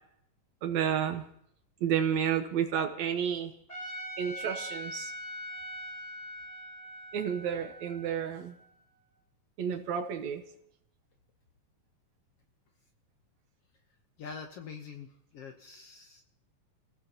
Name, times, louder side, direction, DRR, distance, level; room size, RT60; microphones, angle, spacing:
voice 1, 0.6-1.2 1.8-3.5 4.2-5.1 7.1-8.6 9.6-10.4, right 8 dB, 70° right, 7 dB, 2.1 m, -31 dB
Trumpet, 3.7-8.9, equal, 20° left, 4.8 m, -42 dB
voice 2, 14.2-16.2, left 5 dB, 65° left, 4 dB, 1.6 m, -45 dB
27.5 x 16.5 x 2.9 m, 0.71 s
omnidirectional pair, 3.7 m